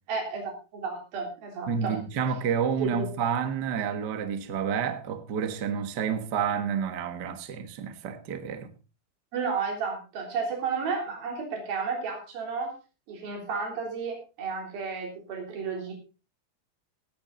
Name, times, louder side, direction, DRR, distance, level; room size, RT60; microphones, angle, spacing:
voice 1, 0.1-2.0 2.8-3.1 9.3-12.8 13.1-15.9, right 5 dB, 80° right, 5.3 m, -32 dB
voice 2, 1.7-8.7, right 7 dB, 55° right, 1.1 m, -29 dB
17.5 x 9.1 x 3.9 m
omnidirectional pair, 4.2 m